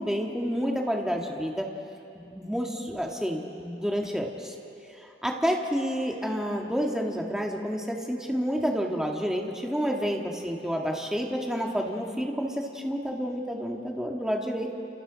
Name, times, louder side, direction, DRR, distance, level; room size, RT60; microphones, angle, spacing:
voice 1, 0.0-1.7 2.3-4.3 5.2-14.7, equal, 5° right, 0 dB, 1.7 m, -29 dB
29.5 x 29.5 x 4.0 m, 2.7 s
head